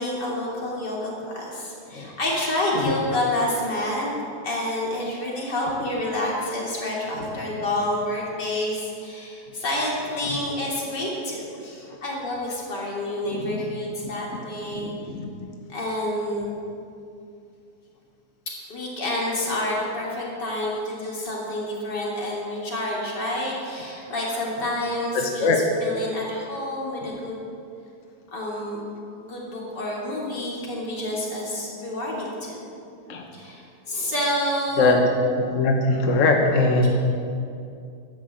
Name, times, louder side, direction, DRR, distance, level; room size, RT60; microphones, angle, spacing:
voice 1, 0.0-4.1 4.4-14.9 15.7-16.5 18.5-25.5 25.8-27.5 28.3-28.8 29.2-32.6 33.3-35.0, left 1 dB, 85° left, -4 dB, 3.7 m, -28 dB
voice 2, 13.3-13.6 14.0-14.1 14.7-15.3 25.1-25.6 27.0-27.2 33.1-33.2 34.8-35.0 35.4-36.9, left 3 dB, 50° left, 2 dB, 1.4 m, -22 dB
13.0 x 10.0 x 7.6 m, 2.5 s
omnidirectional pair, 1.8 m